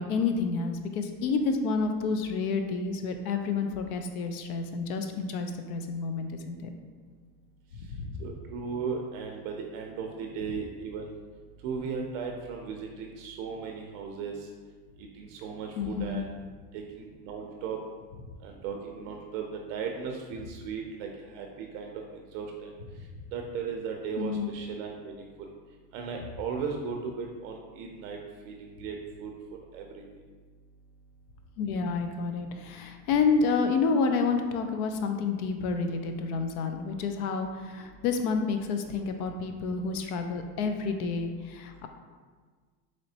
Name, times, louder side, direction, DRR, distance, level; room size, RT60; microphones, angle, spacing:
voice 1, 0.0-6.7 8.0-8.2 15.8-16.2 24.2-24.5 31.6-41.9, left 4 dB, 65° left, 6 dB, 0.5 m, -29 dB
voice 2, 8.2-11.1 11.6-14.3 15.1-16.3 16.7-17.8 18.4-21.9 22.3-22.7 23.3-25.3 25.9-28.2 28.4-29.3 29.7-30.0, right 5 dB, 55° right, 2 dB, 0.5 m, -36 dB
4.1 x 3.1 x 2.7 m, 1.5 s
supercardioid pair, 130°, 49 cm